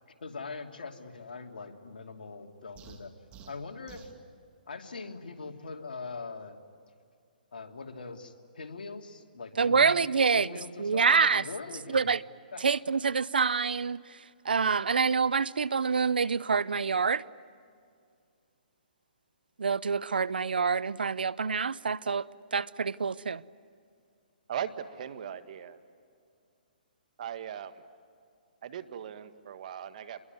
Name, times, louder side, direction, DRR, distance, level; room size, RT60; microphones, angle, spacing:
voice 1, 0.2-3.1 3.5-4.1 4.7-6.6 7.5-10.0 10.3-12.1 12.5-12.6, left 4 dB, 75° left, 2.8 m, -42 dB
sound 1, 2.8-4.2, right 6 dB, 20° right, 2.5 m, -50 dB
voice 2, 9.6-10.5 10.8-11.4 11.9-12.2 12.6-14.0 14.4-17.2 19.6-22.3 22.5-23.4, right 5 dB, 85° right, 0.7 m, -26 dB
voice 3, 24.5-25.8 27.2-27.7 28.6-30.2, right 9 dB, 55° right, 1.8 m, -38 dB
27.5 x 22.5 x 9.6 m
hypercardioid pair, 140°, 5 cm